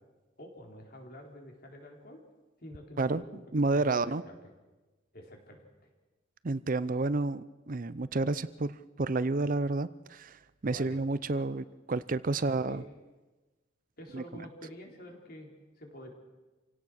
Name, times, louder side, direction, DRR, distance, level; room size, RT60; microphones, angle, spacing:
voice 1, 0.4-2.2 2.6-3.4 3.7-4.5 5.1-5.7 10.6-11.0 11.3-11.4 12.7-12.8 14.0-15.5 15.8-16.1, left 1 dB, 50° left, 2 dB, 4.2 m, -48 dB
voice 2, 3.0-4.2 6.4-12.8 14.1-14.2, right 3 dB, 45° right, 15 dB, 0.6 m, -30 dB
27.5 x 17.0 x 6.4 m, 1.2 s
head